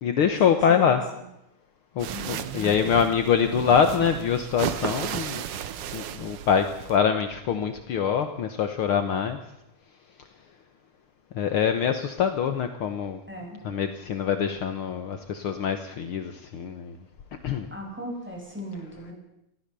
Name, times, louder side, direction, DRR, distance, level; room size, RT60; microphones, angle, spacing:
voice 1, 0.0-1.0 1.9-5.4 5.9-9.4 11.3-13.2 13.6-17.0 17.4-17.7, left 7 dB, 70° left, 8 dB, 1.3 m, -24 dB
sound 1, 2.0-7.0, right 9 dB, 70° right, 1.3 m, -34 dB
voice 2, 2.5-3.2 13.3-13.6 17.7-19.1, equal, 5° right, 0 dB, 6.5 m, -37 dB
29.5 x 13.5 x 6.9 m, 0.84 s
omnidirectional pair, 4.0 m